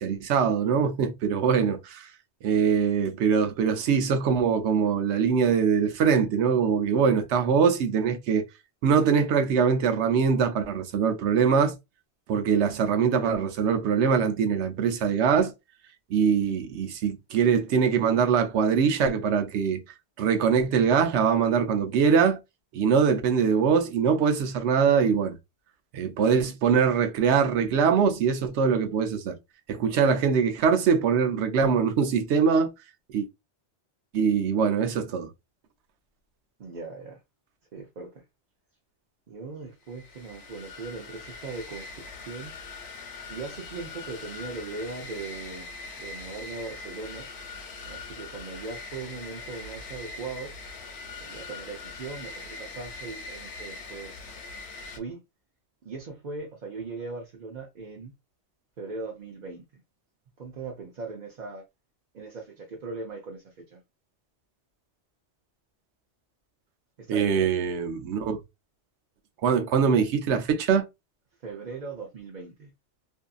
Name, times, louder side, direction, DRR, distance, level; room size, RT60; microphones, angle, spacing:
voice 1, 0.0-2.1 2.4-8.4 8.8-11.7 12.3-15.5 16.1-19.8 20.2-22.4 22.7-25.4 25.9-29.4 29.7-32.7 33.1-33.3 34.1-35.3 67.1-68.4 69.4-70.8, right 6 dB, 90° right, 0.9 m, -23 dB
voice 2, 36.6-37.2 37.7-38.2 39.3-42.5 43.3-45.7 46.0-47.3 47.9-50.6 51.2-54.4 54.9-55.2 55.8-58.1 58.8-59.8 60.4-61.6 62.1-63.8 67.0-67.4 71.4-72.7, right 4 dB, 50° right, 0.7 m, -39 dB
sound 1, 39.9-55.0, left 3 dB, 75° left, 1.0 m, -42 dB
2.7 x 2.5 x 2.3 m
omnidirectional pair, 1.1 m